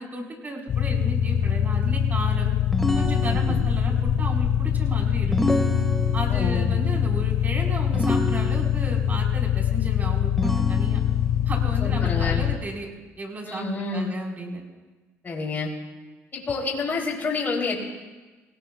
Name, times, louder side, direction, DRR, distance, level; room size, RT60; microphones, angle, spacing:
voice 1, 0.0-2.5 2.9-5.7 6.1-11.0 11.5-12.9 13.2-14.6, right 1 dB, 30° right, 0 dB, 4.5 m, -34 dB
sound 1, 0.7-12.6, left 9 dB, 55° left, 1.4 m, -23 dB
sound 2, 2.7-3.9 5.3-6.5 7.9-9.0 10.4-11.4, equal, 5° left, 1.5 m, -28 dB
voice 2, 3.2-3.6 6.3-6.7 11.8-12.5 13.4-14.1 15.2-15.7 16.3-17.8, left 4 dB, 35° left, -2 dB, 3.3 m, -28 dB
26.5 x 18.0 x 2.4 m, 1.3 s
cardioid pair, 90°, 5 cm